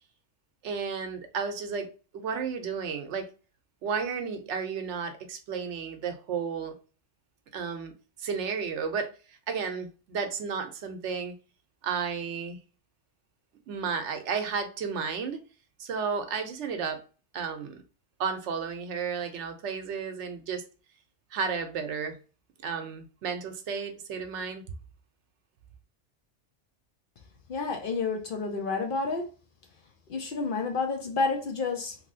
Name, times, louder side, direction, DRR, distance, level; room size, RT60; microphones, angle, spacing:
voice 1, 0.6-1.9 2.1-3.3 3.8-6.7 7.5-7.9 8.2-11.3 11.8-12.6 13.7-15.4 15.8-17.0 17.3-17.8 18.2-20.6 21.3-22.2 22.6-24.6, right 6 dB, 75° right, 0.9 m, -33 dB
voice 2, 27.5-29.3 30.1-32.0, left 4 dB, 55° left, 0.7 m, -29 dB
2.9 x 2.7 x 2.6 m
omnidirectional pair, 1.2 m